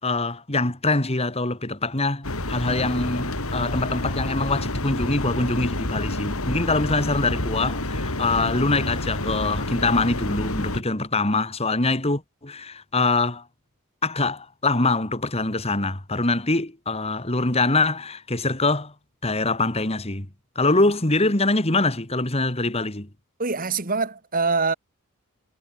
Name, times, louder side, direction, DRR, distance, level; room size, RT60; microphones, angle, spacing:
voice 1, 0.0-13.4 14.0-18.9 19.2-20.3 20.6-23.1, left 2 dB, 25° left, 2.3 m, -24 dB
sound 1, 2.2-10.8, left 1 dB, 70° left, 4.8 m, -28 dB
voice 2, 23.4-24.7, right 4 dB, 40° right, 2.2 m, -24 dB
head